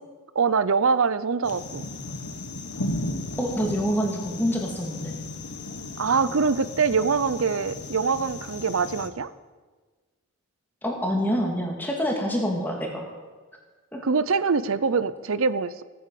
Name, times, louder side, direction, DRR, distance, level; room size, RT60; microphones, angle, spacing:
voice 1, 0.3-1.9 6.0-9.3 14.0-15.8, right 5 dB, 65° right, 15 dB, 0.6 m, -24 dB
sound 1, 1.4-9.1, left 2 dB, 90° left, 1.5 m, -35 dB
voice 2, 3.4-5.2 10.8-13.1 13.9-14.1, equal, 10° left, 0 dB, 2.4 m, -26 dB
17.0 x 9.5 x 7.7 m, 1.4 s
head